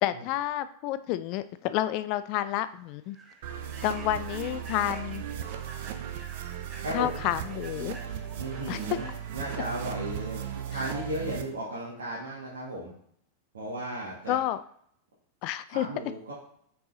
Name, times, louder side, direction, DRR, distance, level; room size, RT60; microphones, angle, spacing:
voice 1, 0.0-3.2 3.8-5.2 6.9-8.0 8.7-9.0 10.7-10.8 14.3-14.6 15.4-15.9, left 13 dB, 45° left, 13 dB, 0.3 m, -30 dB
Human voice / Train, 1.8-1.9 2.3-2.5 3.0-10.6, right 2 dB, 20° right, 1.0 m, -51 dB
sound 1, 3.4-11.4, right 9 dB, 50° right, 0.7 m, -37 dB
voice 2, 6.8-7.2 8.4-9.1 9.3-12.9 13.5-14.4 15.7-16.3, right 1 dB, 65° right, -7 dB, 1.9 m, -35 dB
5.9 x 4.8 x 3.9 m, 0.67 s
figure-of-eight pair, 90°, 0 cm